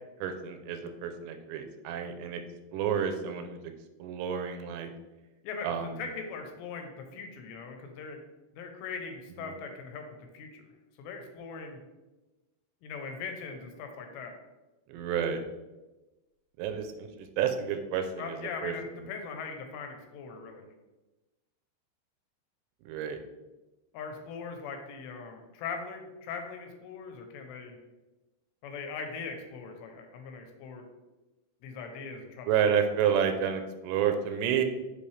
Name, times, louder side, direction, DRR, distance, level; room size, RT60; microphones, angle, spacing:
voice 1, 0.2-2.4 2.7-3.6 4.0-4.9 5.6-5.9 9.4-9.5 14.9-15.4 16.6-18.7 22.9-23.2 32.5-34.6, right 8 dB, 90° right, 7 dB, 2.9 m, -30 dB
voice 2, 5.4-8.2 8.5-10.1 10.3-10.6 11.0-11.8 12.8-14.3 18.2-20.6 23.9-27.8 28.6-30.8 31.6-32.8, left 5 dB, 85° left, 5 dB, 3.0 m, -40 dB
6.9 x 5.5 x 3.3 m, 1.1 s
omnidirectional pair, 5.0 m